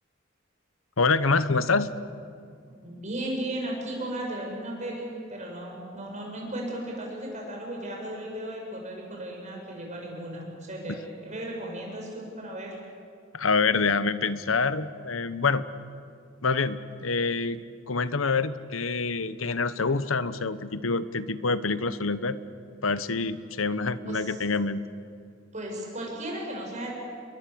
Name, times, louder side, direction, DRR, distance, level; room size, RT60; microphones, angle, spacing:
voice 1, 1.0-1.9 13.3-15.6 16.4-17.6 17.9-22.4 22.8-24.8, left 4 dB, 80° left, 14 dB, 1.1 m, -26 dB
voice 2, 2.8-12.8 24.0-24.4 25.5-26.9, right 1 dB, 35° right, -1 dB, 7.8 m, -35 dB
29.5 x 22.0 x 7.9 m, 2.4 s
head